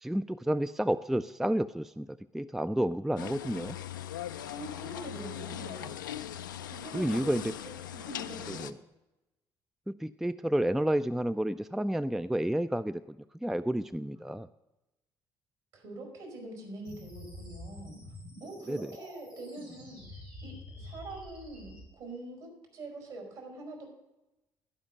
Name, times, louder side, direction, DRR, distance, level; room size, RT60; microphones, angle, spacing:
voice 1, 0.0-3.8 6.9-7.5 8.5-8.7 9.9-13.2 13.4-14.5 18.7-18.9, right 1 dB, 5° right, 13 dB, 0.3 m, -30 dB
sound 1, 3.2-8.7, left 11 dB, 80° left, 0.4 m, -40 dB
voice 2, 4.5-6.0 6.6-7.5 7.9-8.7 14.0-14.1 15.7-17.9 18.4-20.0 20.4-23.9, right 1 dB, 60° right, 1 dB, 4.9 m, -44 dB
sound 2, 16.8-21.8, left 1 dB, 90° right, 4.8 m, -47 dB
11.5 x 5.7 x 7.5 m, 0.99 s
figure-of-eight pair, 50°, 10 cm